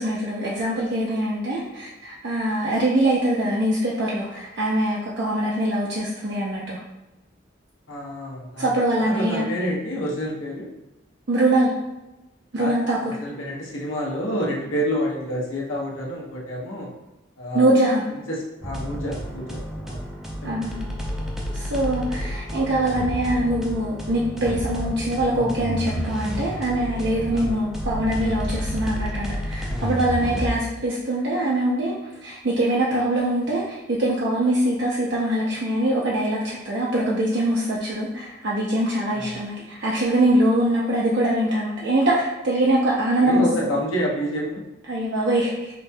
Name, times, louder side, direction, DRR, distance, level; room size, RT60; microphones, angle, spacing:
voice 1, 0.0-6.8 8.6-9.5 11.3-11.7 12.5-13.1 17.5-18.0 20.4-20.8 21.5-31.9 32.2-43.7 44.9-45.6, right 1 dB, 60° right, -5 dB, 0.5 m, -23 dB
voice 2, 7.9-10.7 12.6-12.7 13.0-16.9 17.4-17.7 18.1-20.0 20.4-20.5 27.3-27.6 30.2-30.5 39.1-39.4 43.2-44.6, equal, 85° left, -3 dB, 0.9 m, -28 dB
sound 1, 18.6-30.5, equal, ahead, 0.4 m, -30 dB
5.0 x 2.7 x 2.2 m, 0.99 s
head